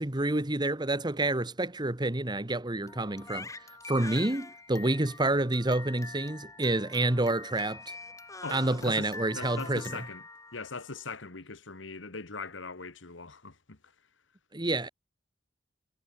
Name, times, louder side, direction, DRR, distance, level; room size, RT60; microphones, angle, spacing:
voice 1, 0.0-3.5 3.9-7.8 8.5-9.8 14.5-14.9, right 2 dB, 25° right, 1.4 m, -28 dB
Crying sobbing, 2.9-11.0, left 3 dB, 15° left, 3.2 m, -44 dB
voice 2, 8.4-10.2 10.5-13.8, left 4 dB, 80° left, 1.8 m, -41 dB
head